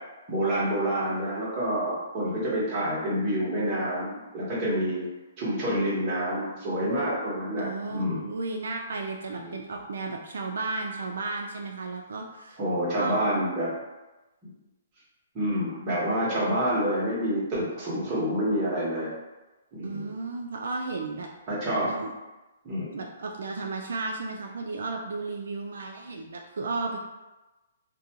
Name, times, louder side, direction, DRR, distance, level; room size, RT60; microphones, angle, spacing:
voice 1, 0.3-5.0 5.4-8.2 9.3-9.5 12.6-13.7 15.3-19.1 19.7-20.1 21.5-21.9 22.6-22.9, equal, 20° right, -8 dB, 0.9 m, -28 dB
voice 2, 7.6-12.6 13.0-13.2 19.8-21.3 21.8-22.1 22.9-27.0, right 3 dB, 80° right, 1 dB, 0.3 m, -34 dB
2.5 x 2.2 x 2.8 m, 1.1 s
hypercardioid pair, 165°, 0 cm